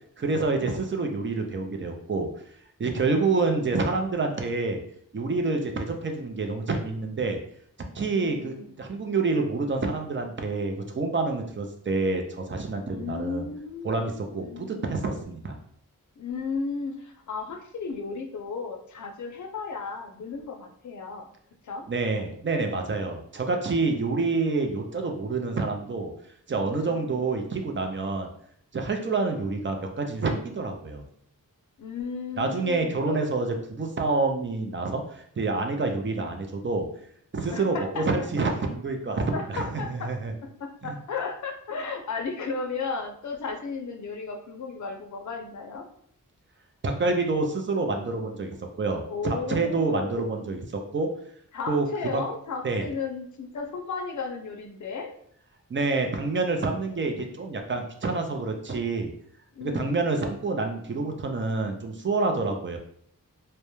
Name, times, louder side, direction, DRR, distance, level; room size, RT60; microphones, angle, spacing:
voice 1, 0.2-2.3 2.8-4.8 5.1-7.4 7.9-13.5 13.8-15.6 21.9-26.1 26.5-28.3 28.7-31.0 32.4-36.9 37.3-40.3 40.9-41.0 46.8-51.1 51.7-51.9 52.1-52.2 52.6-52.9 55.7-59.1 59.6-62.8, right 3 dB, 35° right, 4 dB, 0.4 m, -27 dB
voice 2, 3.1-3.6 8.0-8.8 12.9-14.9 16.2-21.3 21.6-21.9 23.9-24.3 26.6-27.5 31.8-33.4 37.5-38.1 39.3-40.1 40.6-45.8 49.1-50.3 51.5-55.1 59.5-60.1, left 4 dB, 60° left, 4 dB, 0.5 m, -35 dB
2.2 x 2.1 x 2.9 m, 0.65 s
wide cardioid pair, 80°, 34 cm